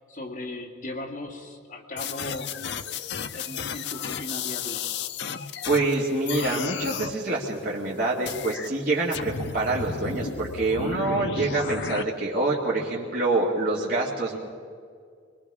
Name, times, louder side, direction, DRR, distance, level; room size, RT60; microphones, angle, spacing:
voice 1, 0.1-2.6 3.3-4.9, left 1 dB, 45° left, -1 dB, 2.5 m, -37 dB
sound 1, 2.0-5.9 6.3-7.1 8.3-8.7 9.1-12.0, left 6 dB, 65° left, 0.6 m, -33 dB
voice 2, 5.6-14.4, right 2 dB, 50° right, -6 dB, 2.3 m, -26 dB
25.0 x 21.5 x 4.9 m, 2.1 s
head